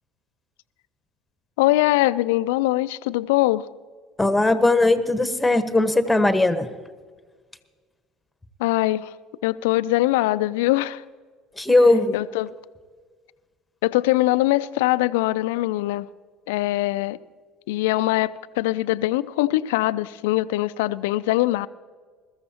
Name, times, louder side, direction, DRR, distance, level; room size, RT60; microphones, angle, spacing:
voice 1, 1.6-3.7 8.6-9.1 9.4-11.0 12.1-12.5 13.8-16.1 16.5-17.2 17.7-21.7, left 17 dB, 75° left, 0.4 m, -22 dB
voice 2, 4.2-6.7 11.6-12.1, left 2 dB, 10° left, 1.2 m, -19 dB
21.5 x 14.0 x 2.9 m
hypercardioid pair, 65°, 0 cm